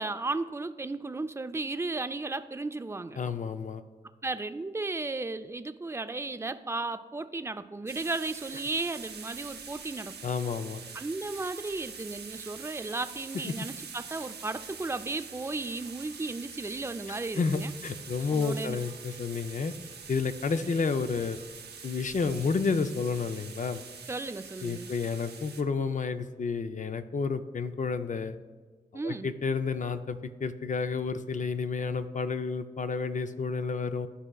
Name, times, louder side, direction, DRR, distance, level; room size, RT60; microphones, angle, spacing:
voice 1, 0.0-3.2 4.2-10.2 10.9-17.7 18.3-18.8 24.1-24.9 28.9-29.3, right 3 dB, 15° right, 11 dB, 0.4 m, -34 dB
voice 2, 3.2-3.8 10.2-10.8 17.1-19.7 20.1-21.4 21.8-23.8 24.6-28.4 28.9-34.1, left 4 dB, 50° left, 9 dB, 0.5 m, -30 dB
sound 1, 7.9-25.6, right 6 dB, 80° right, 0.6 m, -45 dB
13.0 x 4.9 x 2.3 m, 1.5 s
cardioid pair, 50°, 17 cm